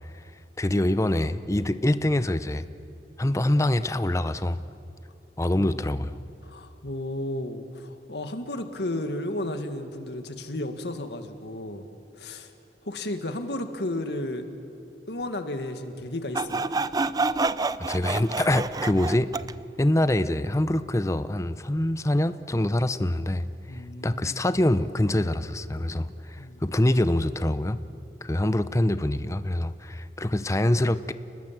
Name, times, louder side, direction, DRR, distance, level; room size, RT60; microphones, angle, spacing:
voice 1, 0.6-2.6 3.2-4.6 5.4-6.1 17.8-19.3 19.8-23.5 24.0-27.8 28.2-31.1, left 1 dB, 15° left, 13 dB, 0.6 m, -25 dB
voice 2, 5.5-5.9 6.4-11.9 12.2-12.5 12.8-14.5 15.1-16.7 23.7-24.4 26.4-26.6, left 1 dB, 75° left, 7 dB, 1.9 m, -33 dB
Sawing, 16.3-19.5, right 3 dB, 20° right, 0.4 m, -28 dB
29.5 x 20.0 x 7.5 m, 2.9 s
head